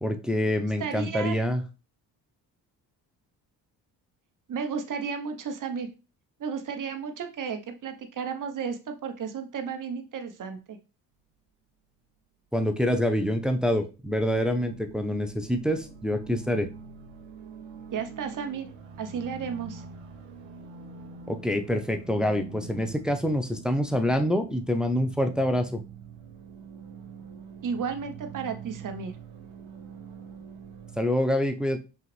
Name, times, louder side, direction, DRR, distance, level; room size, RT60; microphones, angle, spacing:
voice 1, 0.0-1.6 12.5-16.7 21.3-25.8 31.0-31.8, left 1 dB, ahead, 6 dB, 0.5 m, -26 dB
voice 2, 0.8-1.4 4.5-5.9 6.4-10.8 17.9-18.7 19.0-19.8 27.6-29.1, right 6 dB, 40° right, 7 dB, 0.9 m, -33 dB
sound 1, 14.2-31.0, right 5 dB, 70° right, 0.9 m, -44 dB
5.6 x 2.4 x 3.2 m, 0.31 s
hypercardioid pair, 50°, 49 cm